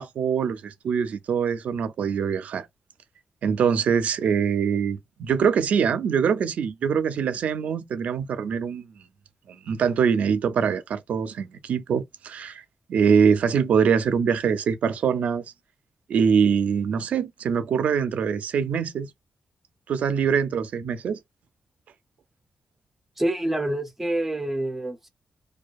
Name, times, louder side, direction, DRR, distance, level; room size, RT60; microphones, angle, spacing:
voice 1, 0.0-2.7 3.4-8.9 9.5-12.6 12.9-15.4 16.1-19.1 19.9-21.2, right 7 dB, 85° right, 0.4 m, -23 dB
voice 2, 23.2-25.1, right 1 dB, 10° right, 0.5 m, -27 dB
2.6 x 2.2 x 2.3 m
wide cardioid pair, 165°, 2 cm